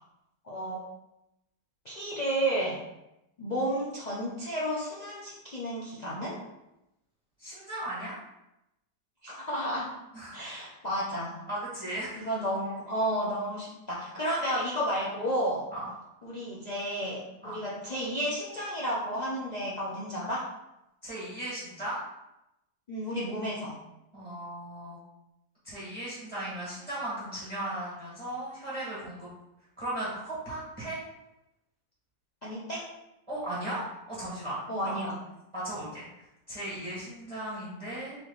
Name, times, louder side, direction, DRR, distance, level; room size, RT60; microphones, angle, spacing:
voice 1, 0.4-0.8 1.8-2.8 3.4-6.4 9.2-9.9 10.3-11.4 12.2-15.6 16.2-20.5 22.9-23.8 32.4-32.9 34.7-35.2, equal, 70° left, -6 dB, 0.4 m, -32 dB
voice 2, 7.4-8.2 10.1-10.4 11.5-12.3 14.2-14.4 15.7-15.9 17.4-17.6 21.0-22.0 24.1-25.0 25.6-29.3 29.8-31.0 33.3-33.8 34.1-35.0 35.5-36.0 36.5-38.2, right 1 dB, 20° right, -8 dB, 1.5 m, -36 dB
3.8 x 3.1 x 3.9 m, 0.89 s
omnidirectional pair, 1.8 m